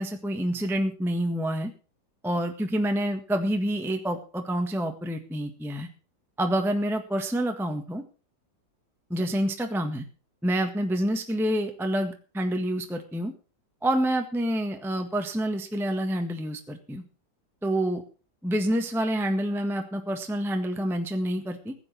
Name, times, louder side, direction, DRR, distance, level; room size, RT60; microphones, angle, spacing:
voice 1, 0.0-1.7 2.2-5.9 6.4-8.0 9.1-10.0 10.4-13.3 13.8-17.0 17.6-18.0 18.4-21.7, right 1 dB, ahead, 5 dB, 1.4 m, -27 dB
16.0 x 9.5 x 6.0 m, 0.37 s
omnidirectional pair, 2.2 m